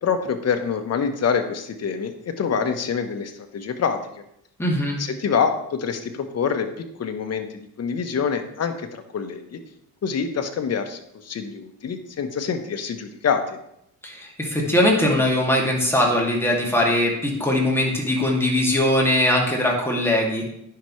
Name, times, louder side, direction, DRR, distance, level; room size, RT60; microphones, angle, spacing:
voice 1, 0.0-4.0 5.0-9.6 10.0-13.6, left 6 dB, 50° left, 6 dB, 1.1 m, -26 dB
voice 2, 4.6-5.0 14.0-20.5, left 1 dB, 5° left, -2 dB, 2.4 m, -21 dB
10.0 x 5.8 x 3.2 m, 0.76 s
cardioid pair, 85°, 34 cm